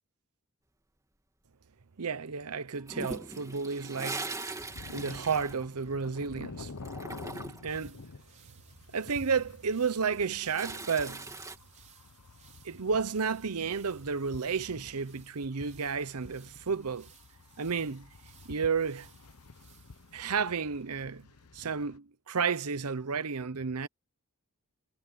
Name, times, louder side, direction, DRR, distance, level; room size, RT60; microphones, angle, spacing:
voice 1, 2.0-4.3 4.9-6.7 7.6-8.0 8.9-11.3 12.6-17.1 17.6-18.1 18.5-19.1 20.1-21.2 21.5-23.9, right 5 dB, 80° right, 0.8 m, -32 dB
Toilet flush, 2.9-6.3 6.6-7.8 9.8-11.6, right 2 dB, 15° right, 2.8 m, -41 dB
sound 1, 4.1-21.9, right 7 dB, 35° right, 5.6 m, -62 dB
sound 2, 4.6-22.0, left 3 dB, 85° left, 1.0 m, -49 dB
head